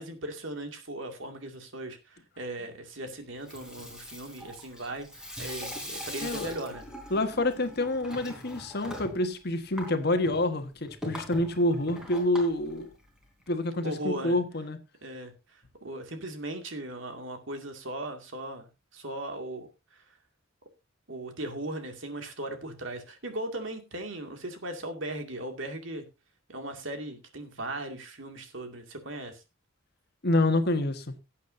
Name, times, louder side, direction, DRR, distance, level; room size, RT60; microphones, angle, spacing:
voice 1, 0.0-6.9 13.8-14.4 15.0-20.1 21.1-26.1 26.5-29.4, right 1 dB, 70° right, 2.3 m, -38 dB
Water tap faucet / Sink (filling or washing), 3.3-13.5, equal, 5° right, 3.3 m, -42 dB
voice 2, 6.2-6.5 7.1-12.9 13.5-14.8 30.2-31.0, left 1 dB, 55° left, 1.4 m, -27 dB
17.5 x 8.4 x 2.7 m
head